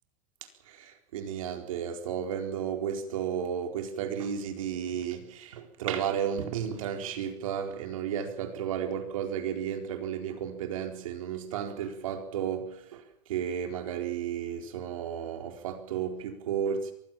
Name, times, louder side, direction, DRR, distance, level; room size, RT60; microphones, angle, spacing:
voice 1, 0.7-13.0 13.3-16.9, right 8 dB, 90° right, 4.3 m, -33 dB
23.5 x 16.5 x 7.3 m
supercardioid pair, 165°, 17 cm